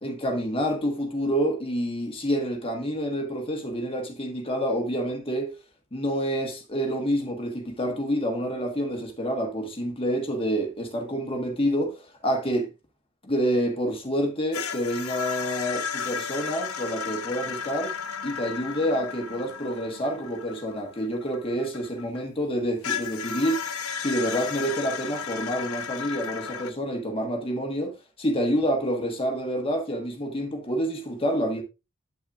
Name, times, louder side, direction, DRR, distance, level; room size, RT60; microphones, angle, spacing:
voice 1, 0.0-5.5 5.9-12.7 13.2-18.0 18.2-31.6, equal, 25° left, 1.5 m, -28 dB
sound 1, 14.5-22.2 22.8-26.7, left 7 dB, 85° left, 0.9 m, -34 dB
8.8 x 8.5 x 2.5 m
head